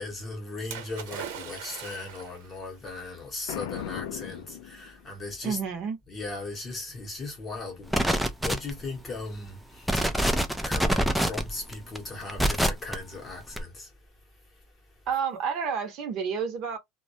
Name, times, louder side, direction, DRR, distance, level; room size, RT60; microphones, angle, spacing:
voice 1, 0.0-5.6 6.1-10.0 10.7-13.9, left 3 dB, 20° left, 0.8 m, -38 dB
Splash splatter, 0.7-2.5 3.4-3.5, right 8 dB, 70° right, 0.9 m, -40 dB
Boom, 3.5-5.3, left 9 dB, 75° left, 0.4 m, -37 dB
voice 2, 5.4-6.0 15.1-16.8, right 6 dB, 35° right, 0.7 m, -30 dB
sound 1, 7.9-8.9 9.4-9.5 9.8-12.9 13.5-13.6, equal, ahead, 0.3 m, -25 dB
2.2 x 2.1 x 2.6 m
supercardioid pair, 170°, 0 cm